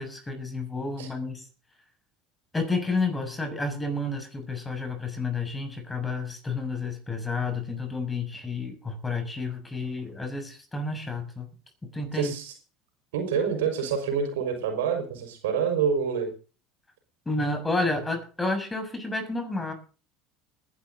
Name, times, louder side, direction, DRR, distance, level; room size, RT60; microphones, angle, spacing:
voice 1, 0.0-1.5 2.5-11.5 11.9-12.3 17.2-19.7, left 3 dB, 15° left, 5 dB, 6.4 m, -30 dB
voice 2, 12.1-12.5 13.1-16.3, right 6 dB, 80° right, 5 dB, 5.4 m, -27 dB
21.0 x 11.0 x 4.0 m, 0.36 s
hypercardioid pair, 75°, 0 cm